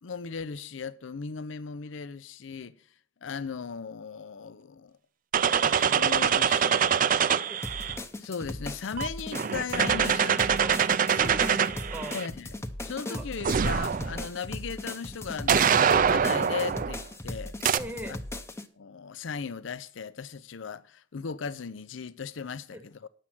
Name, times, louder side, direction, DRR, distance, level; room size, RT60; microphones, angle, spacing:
voice 1, 0.0-2.7 3.2-5.0 5.6-6.9 8.2-10.6 12.1-17.6 18.1-18.2 18.8-23.1, left 5 dB, 85° left, 0.6 m, -37 dB
sound 1, 5.3-8.0 9.0-12.3 13.4-14.3 15.5-17.0 17.6-17.8, right 7 dB, 45° right, 0.4 m, -24 dB
sound 2, 7.6-18.7, left 1 dB, 15° left, 0.7 m, -38 dB
voice 2, 11.1-12.2 13.0-13.3 17.7-18.2 22.7-22.8, right 1 dB, 5° right, 1.0 m, -39 dB
9.9 x 7.5 x 5.9 m
head